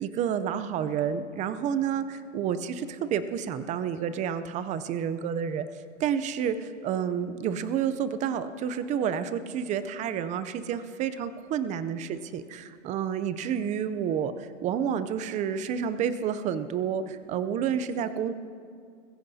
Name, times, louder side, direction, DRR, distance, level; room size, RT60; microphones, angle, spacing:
voice 1, 0.0-5.7 6.0-18.3, right 8 dB, 20° right, 12 dB, 0.5 m, -30 dB
21.0 x 15.5 x 2.7 m, 2.2 s
hypercardioid pair, 130°, 38 cm